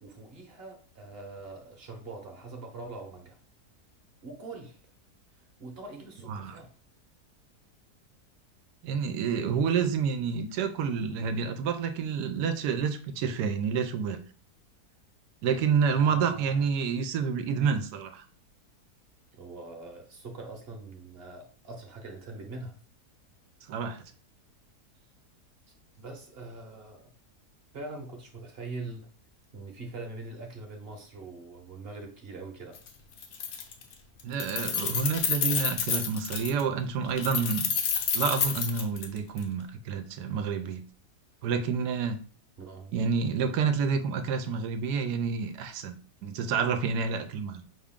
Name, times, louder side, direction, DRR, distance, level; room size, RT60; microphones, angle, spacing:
voice 1, 0.0-3.4 4.2-4.8 5.6-6.7 15.9-16.6 19.4-22.7 26.0-27.1 27.7-29.1 29.5-32.8 42.6-42.9, right 3 dB, 45° right, 0.9 m, -43 dB
voice 2, 8.8-14.2 15.4-18.2 23.7-24.0 34.2-37.6 38.1-40.8 41.4-42.2 42.9-45.9 46.2-47.6, right 6 dB, 90° right, 1.2 m, -28 dB
Keys jangling, 32.7-32.9 33.2-33.9 34.2-36.6 37.2-39.4, left 7 dB, 70° left, 1.1 m, -29 dB
6.0 x 2.4 x 3.6 m
omnidirectional pair, 1.7 m